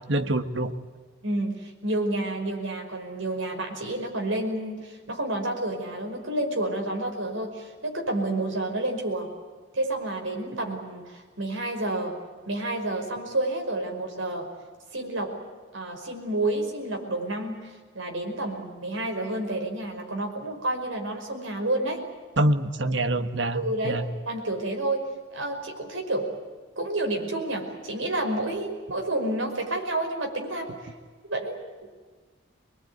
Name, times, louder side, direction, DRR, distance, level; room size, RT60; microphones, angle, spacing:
voice 1, 0.1-0.7 22.4-24.0, right 1 dB, 65° right, 9 dB, 1.5 m, -25 dB
voice 2, 1.2-9.3 9.7-12.2 12.5-14.5 14.9-15.3 15.7-22.0 23.5-26.3 26.8-30.7 31.2-31.9, right 1 dB, 80° right, 3 dB, 5.4 m, -30 dB
25.0 x 21.5 x 9.5 m, 1.5 s
head